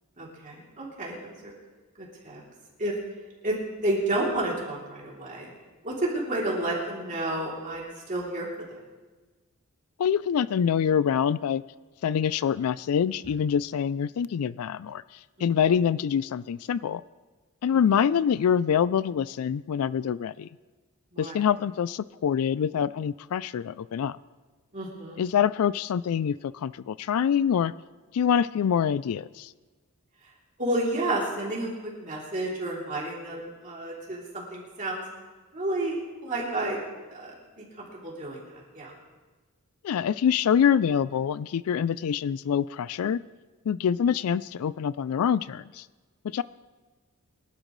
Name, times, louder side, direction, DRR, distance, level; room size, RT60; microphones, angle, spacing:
voice 1, 0.2-1.5 2.0-2.4 2.8-2.9 3.4-5.5 5.8-8.5 15.4-15.5 21.1-21.4 24.7-25.2 30.6-35.0 35.5-36.8 37.1-38.4 38.7-38.9, right 1 dB, 35° right, -4 dB, 3.1 m, -31 dB
voice 2, 10.0-11.6 12.0-15.0 15.4-17.0 17.6-20.5 21.2-24.2 25.2-27.7 28.1-29.5 39.8-43.2 43.7-45.9 46.2-46.4, left 8 dB, 75° left, 18 dB, 0.3 m, -25 dB
23.5 x 12.0 x 3.2 m, 1.3 s
head